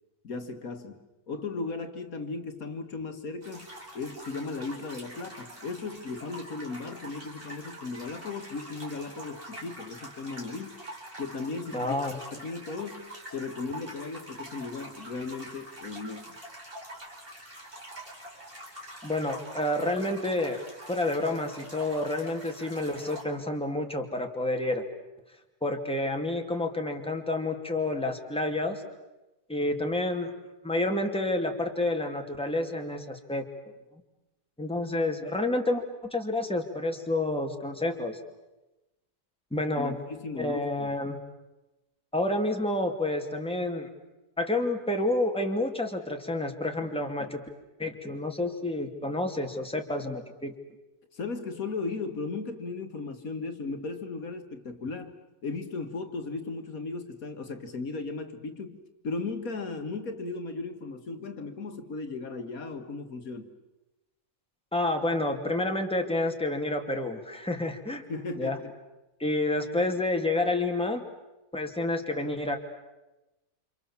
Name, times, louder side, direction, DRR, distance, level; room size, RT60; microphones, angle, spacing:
voice 1, 0.2-1.0 1.3-3.7 3.9-10.8 11.2-12.0 12.3-16.4 39.8-40.9 51.1-63.5 68.1-68.7, left 3 dB, 65° left, 7 dB, 1.9 m, -36 dB
sound 1, 3.4-23.2, right 1 dB, 35° right, 4.8 m, -45 dB
voice 2, 11.7-12.2 19.0-20.6 20.9-24.9 25.6-28.8 29.5-30.3 30.6-33.5 34.6-35.8 36.1-38.2 39.5-39.9 40.4-41.2 42.1-43.9 44.4-47.4 47.8-50.5 64.7-68.0 68.4-68.6 69.2-71.0 71.5-72.6, left 2 dB, 5° left, 3 dB, 2.4 m, -29 dB
29.0 x 27.0 x 7.2 m, 1.0 s
omnidirectional pair, 1.6 m